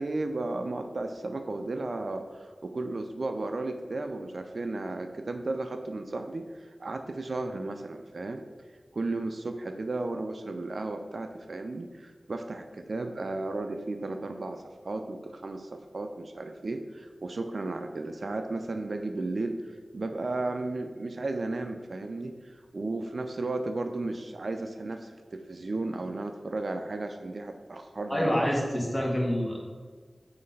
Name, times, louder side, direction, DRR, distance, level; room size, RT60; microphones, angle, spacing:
voice 1, 0.0-8.4 8.9-28.3, right 2 dB, 65° right, 6 dB, 0.4 m, -34 dB
voice 2, 28.1-29.6, equal, 15° left, -3 dB, 1.6 m, -27 dB
5.7 x 3.2 x 5.3 m, 1.5 s
wide cardioid pair, 70°, 0 cm